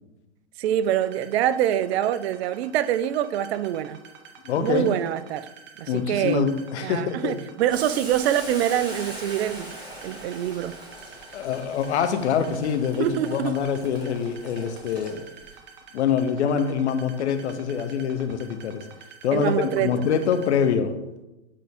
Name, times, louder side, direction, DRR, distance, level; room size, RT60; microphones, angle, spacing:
voice 1, 0.6-4.0 4.6-5.5 5.8-6.5 6.8-9.7 10.0-10.8 13.0-13.6 19.3-19.9, right 11 dB, 65° right, 0.5 m, -25 dB
sound 1, 0.8-20.7, right 6 dB, 30° right, 1.0 m, -48 dB
voice 2, 4.4-4.9 5.9-7.4 11.3-15.2 15.9-18.8 19.2-20.9, left 7 dB, 75° left, 0.8 m, -25 dB
Boiling, 7.7-15.5, right 1 dB, 10° right, 1.9 m, -41 dB
8.5 x 3.7 x 3.5 m
hypercardioid pair, 100°, 35 cm